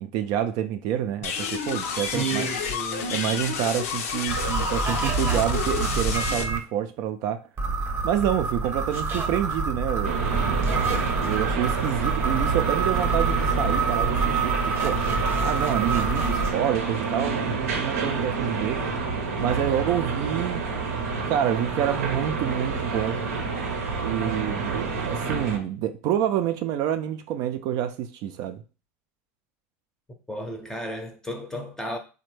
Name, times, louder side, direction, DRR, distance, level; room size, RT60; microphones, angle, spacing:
voice 1, 0.0-2.5 3.1-7.4 8.0-18.8 19.4-23.2 24.0-28.6, right 10 dB, 55° right, 0.3 m, -28 dB
sound 1, 1.2-6.4, left 6 dB, 75° left, 0.5 m, -30 dB
voice 2, 2.1-3.4 30.3-32.0, right 2 dB, 5° left, 0.6 m, -33 dB
sound 2, 4.3-6.6 7.6-16.5, right 4 dB, 30° right, 0.7 m, -26 dB
sound 3, 10.0-25.6, right 4 dB, 85° right, 0.7 m, -29 dB
3.2 x 2.1 x 3.1 m
hypercardioid pair, 95°, 8 cm